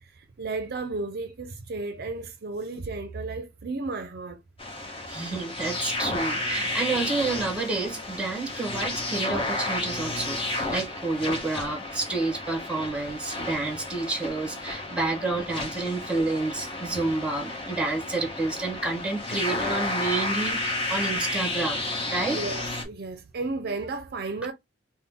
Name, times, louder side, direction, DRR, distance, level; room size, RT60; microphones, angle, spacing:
voice 1, 0.0-4.4 22.3-24.5, right 3 dB, 55° right, 0.5 m, -33 dB
sound 1, 4.6-22.8, left 2 dB, 30° left, 1.1 m, -32 dB
voice 2, 5.1-22.4, right 3 dB, 5° right, 1.1 m, -29 dB
3.8 x 2.2 x 3.5 m
head